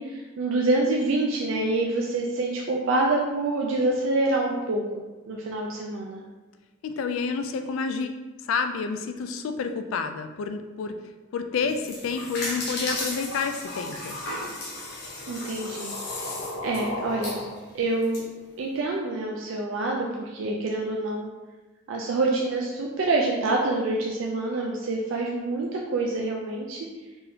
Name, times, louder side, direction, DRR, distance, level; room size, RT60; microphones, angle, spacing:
voice 1, 0.0-6.2 15.3-16.1 16.6-17.4 17.7-18.2 18.6-21.3 21.9-26.9, right 2 dB, 70° right, -1 dB, 0.4 m, -26 dB
voice 2, 6.8-8.1 8.4-10.9 11.3-14.2, left 5 dB, 80° left, 7 dB, 0.3 m, -29 dB
sound 1, 11.6-18.2, left 1 dB, 55° left, 1.0 m, -34 dB
4.4 x 3.4 x 2.7 m, 1.2 s
head